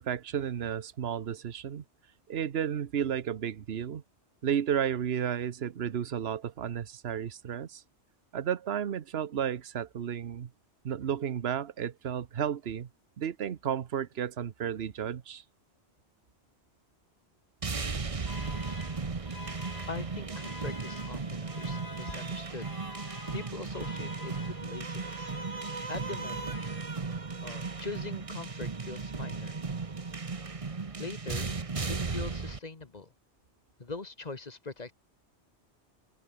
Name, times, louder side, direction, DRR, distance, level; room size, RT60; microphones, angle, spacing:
voice 1, 0.0-1.8 2.3-4.0 4.4-7.8 8.3-10.5 10.8-12.9 13.2-15.4, right 9 dB, 65° right, 1.2 m, -32 dB
sound 1, 17.6-32.6, right 4 dB, 30° right, 1.1 m, -36 dB
sound 2, 18.2-27.2, left 2 dB, 60° left, 5.2 m, -48 dB
voice 2, 19.9-22.7 23.3-25.3 25.9-26.6 27.4-29.6 31.0-31.6 31.9-33.1 33.8-34.9, left 3 dB, 35° left, 1.6 m, -42 dB
open air
omnidirectional pair, 1.2 m